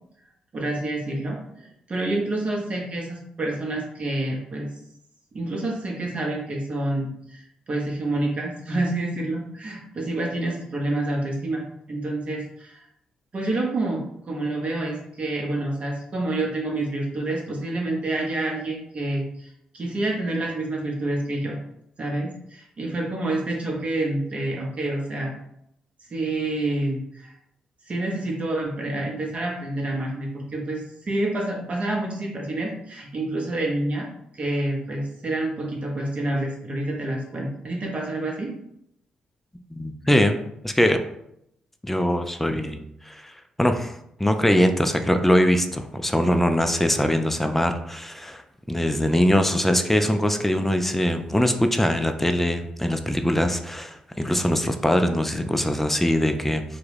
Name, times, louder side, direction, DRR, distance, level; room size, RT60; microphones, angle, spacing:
voice 1, 0.5-4.7 5.3-12.9 13.3-14.0 14.3-21.6 22.0-25.3 26.1-27.3 27.8-34.1 34.3-38.5, right 2 dB, 45° right, -1 dB, 0.7 m, -28 dB
voice 2, 39.7-41.0 41.8-42.8 43.1-43.3 43.6-43.9 44.2-48.4 48.7-56.6, equal, 10° left, 7 dB, 0.3 m, -22 dB
2.2 x 2.1 x 3.2 m, 0.77 s
hypercardioid pair, 45°, 3 cm